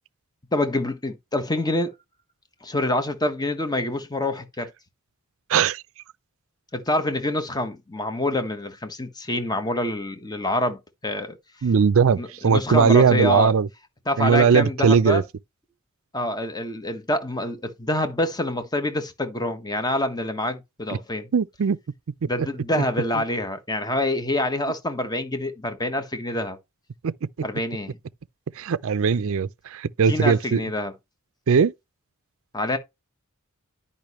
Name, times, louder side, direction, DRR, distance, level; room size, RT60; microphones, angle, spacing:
voice 1, 0.5-1.9 2.6-4.7 6.7-11.4 12.1-13.5 14.1-15.2 16.1-21.3 22.3-26.6 27.4-28.0 30.1-30.9 32.5-32.8, left 1 dB, 20° left, 1.3 m, -26 dB
voice 2, 5.5-5.8 11.6-13.7 14.2-15.2 20.9-21.0 21.3-21.8 22.2-22.3 27.0-27.1 28.6-30.6 31.5-31.7, right 6 dB, 65° right, 0.4 m, -19 dB
10.5 x 5.5 x 3.1 m
head